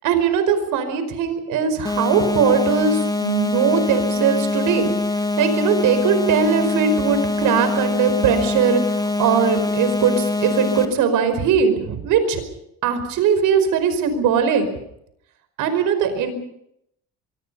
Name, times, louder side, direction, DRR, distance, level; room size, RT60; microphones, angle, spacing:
voice 1, 0.0-4.9 5.4-12.4 12.8-14.7 15.6-16.3, right 6 dB, 70° right, 10 dB, 5.1 m, -20 dB
sound 1, 1.8-10.8, left 2 dB, 10° left, 2.3 m, -23 dB
25.0 x 23.5 x 5.5 m, 0.75 s
cardioid pair, 150°, 32 cm